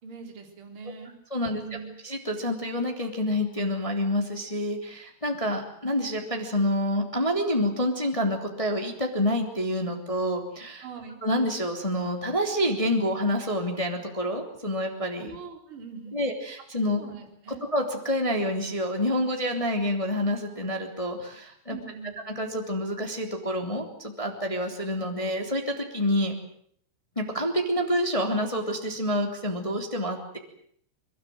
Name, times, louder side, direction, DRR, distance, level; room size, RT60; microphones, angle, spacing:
voice 1, 0.0-1.9 10.8-11.2 15.2-16.3 17.0-17.6 21.7-22.2, right 5 dB, 30° right, 3 dB, 3.8 m, -42 dB
voice 2, 1.3-1.6 2.0-10.8 11.2-15.3 16.1-17.0 17.7-21.8 22.3-26.3 27.1-30.4, equal, 10° left, 3 dB, 1.5 m, -28 dB
24.0 x 23.5 x 7.8 m, 0.64 s
omnidirectional pair, 6.0 m